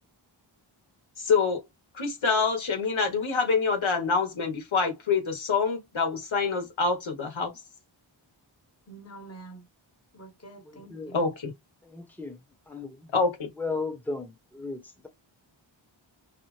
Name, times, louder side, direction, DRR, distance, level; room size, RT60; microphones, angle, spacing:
voice 1, 1.2-1.6 1.9-7.5 11.1-11.5 13.1-13.5, left 4 dB, 80° left, 1.3 m, -26 dB
voice 2, 8.9-9.6 10.1-11.2, right 3 dB, 30° left, 1.1 m, -46 dB
voice 3, 10.6-11.2 11.8-12.4 12.7-13.1 13.6-15.1, left 3 dB, 5° left, 0.9 m, -36 dB
5.6 x 2.1 x 3.2 m
wide cardioid pair, 95°, 47 cm